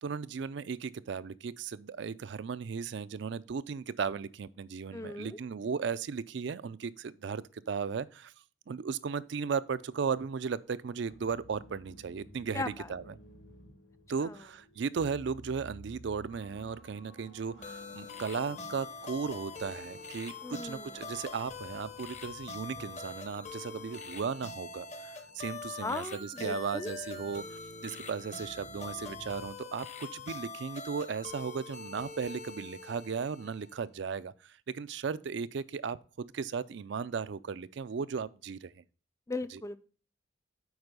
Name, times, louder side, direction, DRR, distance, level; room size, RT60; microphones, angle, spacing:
voice 1, 0.0-8.3 8.7-12.6 12.9-13.1 14.1-38.8 39.5-39.6, right 5 dB, 60° right, 0.4 m, -36 dB
voice 2, 4.9-5.4 12.5-12.9 14.2-14.4 20.4-20.9 25.8-26.9 39.3-39.8, left 3 dB, 15° left, 0.3 m, -37 dB
sound 1, 9.7-29.5, equal, 60° left, 1.3 m, -54 dB
sound 2, 17.6-33.8, left 4 dB, 35° left, 0.8 m, -44 dB
7.9 x 4.8 x 5.2 m
head